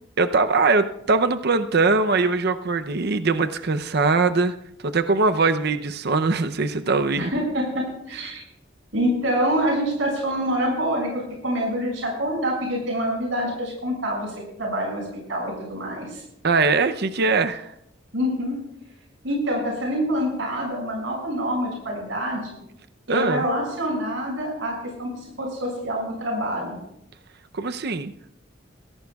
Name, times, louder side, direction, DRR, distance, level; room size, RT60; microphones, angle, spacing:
voice 1, 0.2-4.5 4.8-7.3 16.4-17.7 23.1-23.4 27.5-28.1, right 3 dB, 55° right, 9 dB, 0.7 m, -21 dB
voice 2, 7.2-8.4 8.9-15.0 15.3-16.2 18.1-18.6 19.2-22.4 23.1-25.1 25.4-26.8, equal, 80° right, -1 dB, 6.4 m, -26 dB
23.0 x 16.5 x 2.4 m, 0.77 s
head